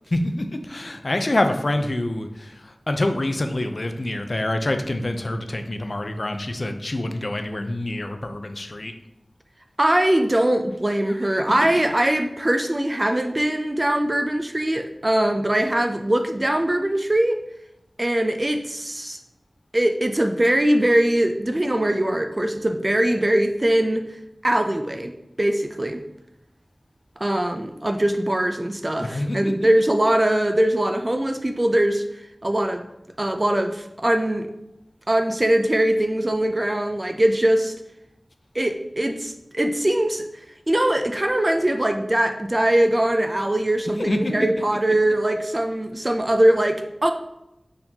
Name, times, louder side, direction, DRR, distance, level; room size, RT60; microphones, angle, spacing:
voice 1, 0.1-8.9 11.3-11.4 29.0-29.5 44.0-44.3, left 1 dB, 55° left, 7 dB, 0.4 m, -26 dB
voice 2, 9.8-17.4 18.0-19.2 19.7-24.1 24.4-26.0 27.2-32.0 32.4-32.8 33.2-34.5 35.1-37.7 38.5-40.3 40.7-47.1, right 1 dB, 30° right, 6 dB, 0.3 m, -21 dB
4.5 x 3.7 x 2.8 m, 0.89 s
wide cardioid pair, 60°, 0 cm